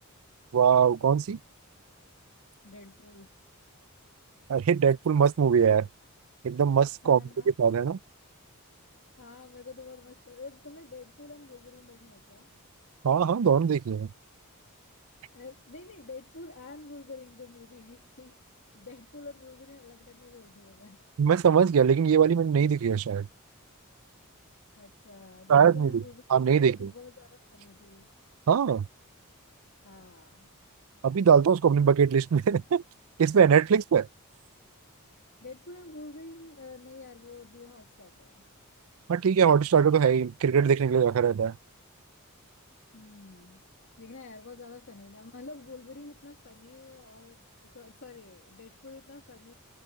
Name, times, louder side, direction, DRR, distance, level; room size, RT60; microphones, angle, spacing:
voice 1, 0.5-1.4 4.5-5.9 6.4-7.2 7.6-8.0 13.0-14.1 21.2-23.3 25.5-25.9 26.3-26.9 28.5-28.9 31.0-32.8 33.2-34.1 39.1-41.5, right 7 dB, 70° right, 0.4 m, -22 dB
voice 2, 2.6-3.3 7.0-7.5 9.2-12.5 15.3-18.4 18.7-21.0 24.8-26.2 26.6-28.1 29.8-30.5 35.4-38.5 42.9-43.6 44.0-49.5, left 3 dB, 60° left, 2.3 m, -48 dB
head